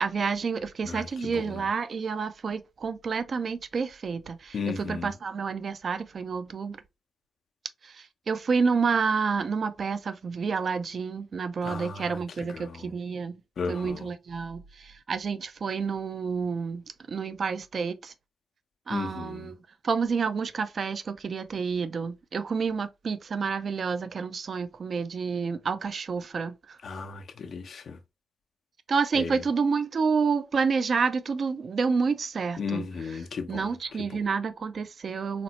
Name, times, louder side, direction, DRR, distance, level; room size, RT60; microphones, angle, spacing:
voice 1, 0.0-6.8 7.8-13.4 13.7-18.1 18.9-19.6 19.8-26.8 28.9-32.8 33.5-35.4, right 5 dB, 60° right, 0.4 m, -29 dB
voice 2, 0.8-1.7 4.5-5.1 11.6-12.9 13.6-14.1 18.9-19.5 26.8-28.0 29.1-29.4 32.6-34.2, left 5 dB, 65° left, 0.5 m, -35 dB
4.2 x 2.0 x 2.8 m
supercardioid pair, 45°, 0 cm